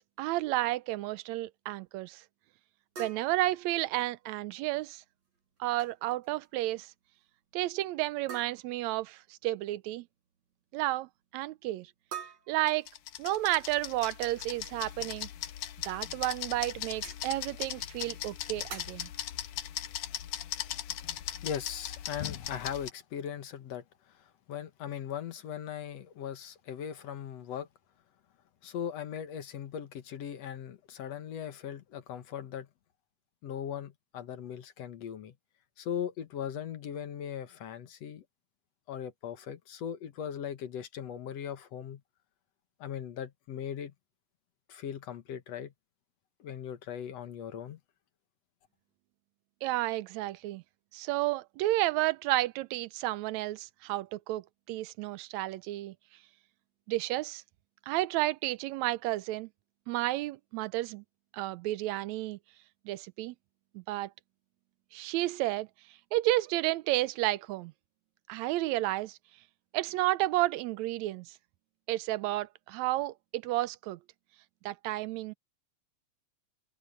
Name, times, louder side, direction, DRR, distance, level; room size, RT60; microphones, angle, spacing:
voice 1, 0.0-2.2 3.0-5.0 5.6-6.9 7.5-10.1 10.7-11.9 12.5-12.9 13.2-15.3 15.8-19.1 49.6-50.6 50.9-55.9 56.9-57.4 57.9-59.5 59.9-61.0 61.3-62.4 62.9-63.4 63.8-64.1 64.9-65.7 66.1-67.7 68.3-69.2 69.7-71.4 71.9-74.0 74.7-75.3, right 17 dB, 80° right, 1.9 m, -31 dB
sound 1, 3.0-4.3 5.6-5.9 6.2-6.5 6.8-6.9 8.3-8.9 12.1-13.3 15.3-15.4 16.0-16.1 16.9-17.3 18.7-19.2, right 5 dB, 55° right, 7.2 m, -46 dB
sound 2, 12.7-22.9, left 11 dB, 85° left, 2.6 m, -39 dB
voice 2, 21.4-23.8 24.2-27.7 28.6-32.7 33.4-35.3 35.8-38.2 38.9-42.0 42.8-43.9 44.7-45.7 46.4-47.8, left 9 dB, 65° left, 2.3 m, -39 dB
omnidirectional pair, 3.4 m